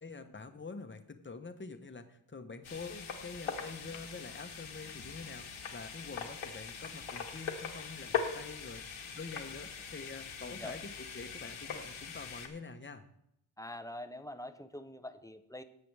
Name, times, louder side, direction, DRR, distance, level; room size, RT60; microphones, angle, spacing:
voice 1, 0.0-13.0, left 4 dB, 25° left, 8 dB, 1.0 m, -46 dB
sound 1, 2.6-12.5, left 6 dB, 80° left, 1.6 m, -41 dB
voice 2, 10.4-10.8 13.6-15.6, left 1 dB, 5° left, 10 dB, 0.6 m, -45 dB
18.0 x 7.7 x 3.4 m, 0.77 s
wide cardioid pair, 110°, 50 cm